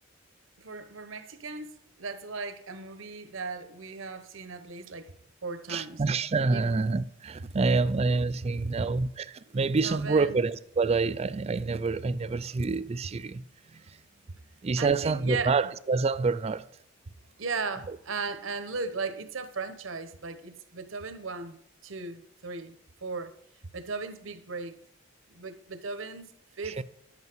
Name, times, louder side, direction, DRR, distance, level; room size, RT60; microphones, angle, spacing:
voice 1, 0.6-5.1 5.4-6.0 6.5-6.7 9.5-10.4 14.8-15.7 17.4-21.6 21.8-23.3 23.7-24.8 25.3-26.8, right 4 dB, 75° right, 1.0 m, -37 dB
voice 2, 5.7-14.0 14.6-16.7 17.9-18.0 26.6-26.8, right 4 dB, 30° right, 0.4 m, -27 dB
10.5 x 8.1 x 4.6 m
head